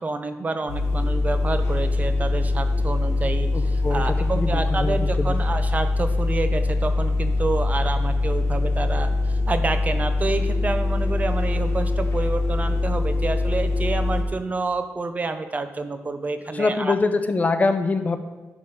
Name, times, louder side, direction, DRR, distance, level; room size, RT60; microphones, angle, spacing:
voice 1, 0.0-16.9, right 3 dB, 30° right, 9 dB, 0.6 m, -28 dB
sound 1, 0.7-14.2, left 2 dB, 65° left, 2.2 m, -23 dB
voice 2, 3.5-4.0 4.4-5.4 16.5-18.2, left 3 dB, 30° left, 9 dB, 0.6 m, -24 dB
11.0 x 3.7 x 6.5 m, 1.2 s
wide cardioid pair, 145°, 5 cm